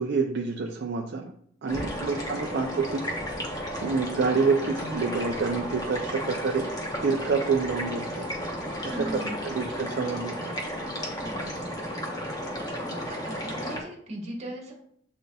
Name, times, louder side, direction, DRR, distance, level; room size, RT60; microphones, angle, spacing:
voice 1, 0.0-1.3 1.6-3.1 3.8-6.7 7.0-8.3 8.8-10.5, right 4 dB, 60° right, 2 dB, 0.4 m, -27 dB
sound 1, 1.7-13.8, equal, 20° left, 0.9 m, -33 dB
voice 2, 8.7-9.4 11.2-11.7 12.8-14.7, equal, 35° right, 0 dB, 1.2 m, -38 dB
7.8 x 2.6 x 2.3 m, 0.66 s
head